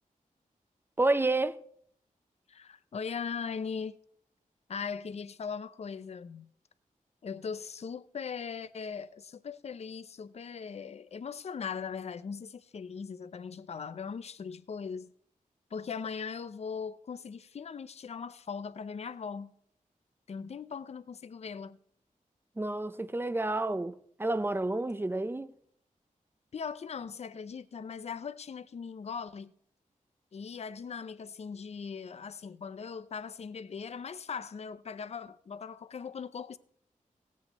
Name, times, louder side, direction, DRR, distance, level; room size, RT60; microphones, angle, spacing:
voice 1, 1.0-1.6 22.6-25.5, right 2 dB, 15° right, 0.5 m, -30 dB
voice 2, 2.5-4.0 4.7-6.5 7.2-15.1 15.7-19.5 20.3-21.8 26.5-29.5 30.3-36.6, left 6 dB, 50° left, 0.5 m, -39 dB
17.0 x 8.4 x 4.0 m
wide cardioid pair, 115°, 14 cm